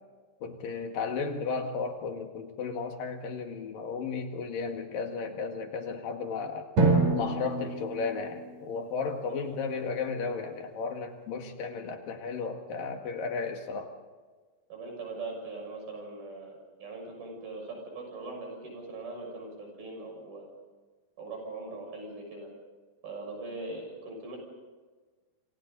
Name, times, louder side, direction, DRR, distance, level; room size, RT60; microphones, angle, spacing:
voice 1, 0.4-6.7 7.1-13.9, left 5 dB, 70° left, 4 dB, 3.6 m, -34 dB
Drum, 6.8-9.3, right 2 dB, 50° right, 5.7 m, -27 dB
voice 2, 14.7-20.5 21.2-22.5 23.0-24.4, right 3 dB, 80° right, 1 dB, 8.7 m, -41 dB
27.5 x 26.5 x 4.1 m, 1.4 s
omnidirectional pair, 4.2 m